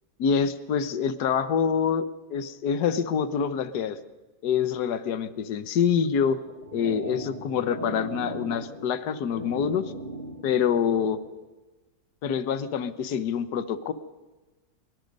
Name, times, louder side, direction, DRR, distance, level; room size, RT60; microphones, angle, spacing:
voice 1, 0.2-2.0 2.3-4.0 4.4-6.4 6.7-9.9 10.4-11.2 12.2-13.9, left 7 dB, 65° left, 13 dB, 1.6 m, -26 dB
sound 1, 6.4-11.3, right 1 dB, 25° left, 3.6 m, -39 dB
23.5 x 22.5 x 5.4 m, 1.2 s
omnidirectional pair, 1.9 m